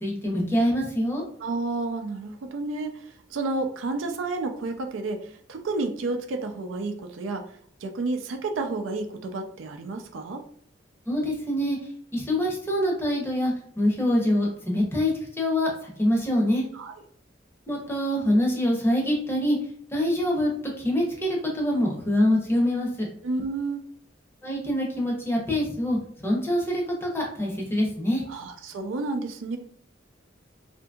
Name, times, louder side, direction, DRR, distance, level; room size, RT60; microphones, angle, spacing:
voice 1, 0.0-1.2 11.1-11.8 12.1-15.7 16.0-16.6 17.7-19.6 19.9-20.5 20.8-23.1 24.4-28.2, left 1 dB, 10° left, -1 dB, 0.6 m, -25 dB
voice 2, 1.4-3.0 3.3-7.5 7.8-10.4 16.7-16.9 23.2-23.8 28.3-29.6, right 3 dB, 85° right, 5 dB, 0.4 m, -30 dB
2.7 x 2.6 x 2.3 m, 0.63 s
head